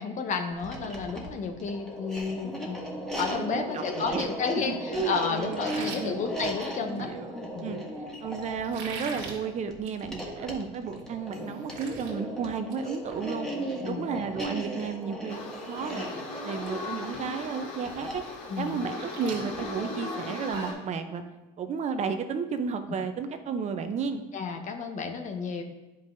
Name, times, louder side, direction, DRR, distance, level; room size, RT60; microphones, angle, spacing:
voice 1, 0.0-2.8 3.2-7.1 7.5-7.8 13.8-14.1 18.5-18.8 24.3-25.6, left 5 dB, 45° left, 5 dB, 1.0 m, -32 dB
sound 1, 0.5-19.8, equal, 5° left, 1.5 m, -37 dB
voice 2, 3.5-4.3 4.5-6.2 7.0-7.3 7.6-7.8 8.2-13.5 13.8-16.1 16.4-18.2 18.6-21.2 21.6-24.2, right 6 dB, 40° right, 8 dB, 0.6 m, -33 dB
sound 2, 5.5-7.1 8.6-9.4 9.8-10.0 10.4-10.5 11.0-11.1 11.3-12.1 12.5-12.8 13.1-13.2 15.1-15.2 15.6-15.9 16.2-16.7 17.1-17.2 18.6-20.9, right 4 dB, 75° right, 1.7 m, -41 dB
sound 3, 15.3-20.7, left 2 dB, 75° left, 2.3 m, -38 dB
9.6 x 5.4 x 2.6 m, 1.1 s
supercardioid pair, 95°, 18 cm